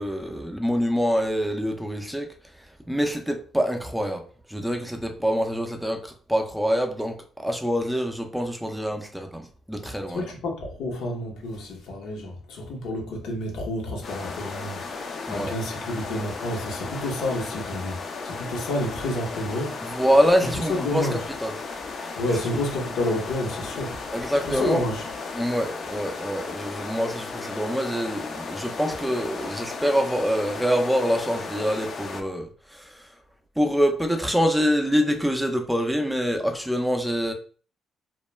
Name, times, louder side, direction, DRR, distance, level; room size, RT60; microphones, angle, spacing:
voice 1, 0.0-2.3 2.9-4.2 4.5-10.2 15.3-15.5 19.9-21.1 21.4-21.5 24.1-24.8 25.3-33.1 33.6-37.3, equal, 5° right, 0.4 m, -25 dB
voice 2, 10.1-19.8 20.4-21.2 22.2-24.0 24.4-25.0, left 1 dB, 80° left, 0.8 m, -29 dB
sound 1, 14.0-32.2, left 4 dB, 55° left, 0.5 m, -35 dB
2.2 x 2.1 x 3.1 m
cardioid pair, 90°, 0 cm